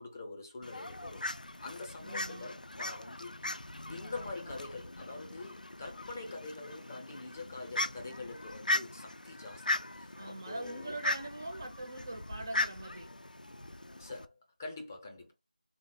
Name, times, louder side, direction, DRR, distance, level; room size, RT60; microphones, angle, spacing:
voice 1, 0.0-3.4 3.9-11.0 14.0-15.3, left 3 dB, 20° left, 0.6 m, -45 dB
Fowl, 0.6-14.2, left 2 dB, 85° left, 0.4 m, -39 dB
voice 2, 2.0-2.5 10.2-13.1, right 2 dB, 30° right, 0.5 m, -42 dB
3.6 x 2.0 x 3.4 m
figure-of-eight pair, 170°, 4 cm